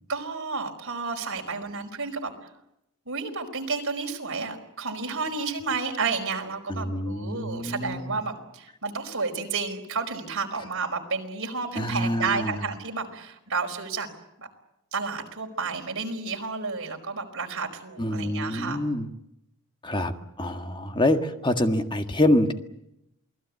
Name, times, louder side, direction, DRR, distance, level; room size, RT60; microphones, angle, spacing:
voice 1, 0.1-2.3 3.0-14.1 14.4-14.5 14.9-18.8, right 4 dB, 60° right, 3 dB, 4.9 m, -31 dB
voice 2, 6.7-8.2 11.8-12.6 18.0-19.1 19.8-20.1 20.4-22.5, left 1 dB, 20° left, 6 dB, 1.8 m, -26 dB
28.5 x 20.0 x 8.4 m, 0.82 s
head